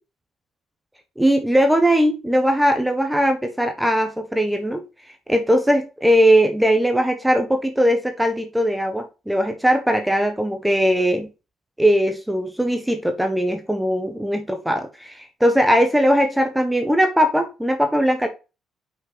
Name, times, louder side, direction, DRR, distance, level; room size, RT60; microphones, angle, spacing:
voice 1, 1.2-4.8 5.3-11.3 11.8-18.3, equal, 5° right, 6 dB, 1.3 m, -19 dB
6.1 x 5.2 x 5.5 m, 0.29 s
cardioid pair, 90°, 0 cm